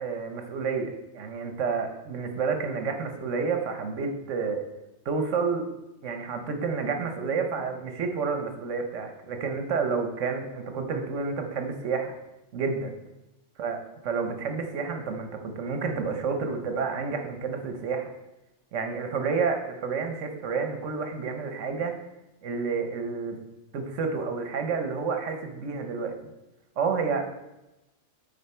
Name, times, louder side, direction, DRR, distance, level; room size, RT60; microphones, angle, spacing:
voice 1, 0.0-4.6 5.0-5.7 6.0-12.1 12.5-12.9 13.6-13.8 14.0-18.1 18.7-22.0 22.4-23.4 23.7-26.1 26.8-27.3, right 5 dB, 80° right, 5 dB, 1.2 m, -30 dB
8.9 x 4.3 x 4.3 m, 0.97 s
omnidirectional pair, 1.3 m